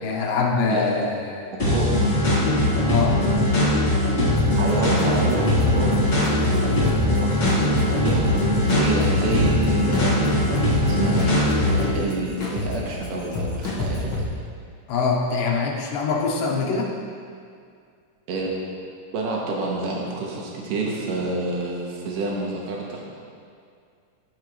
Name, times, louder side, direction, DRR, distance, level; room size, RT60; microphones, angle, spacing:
voice 1, 0.0-1.4 2.9-3.4 14.9-16.9, left 4 dB, 85° left, -2 dB, 2.6 m, -24 dB
sound 1, 1.6-11.9, left 1 dB, 30° left, 1.5 m, -21 dB
sound 2, 4.4-14.2, left 2 dB, 55° left, 1.6 m, -30 dB
voice 2, 4.6-6.1 6.4-14.2 18.3-18.5 19.1-23.0, right 3 dB, 80° right, -2 dB, 2.6 m, -29 dB
14.0 x 4.7 x 3.1 m, 2.3 s
omnidirectional pair, 3.8 m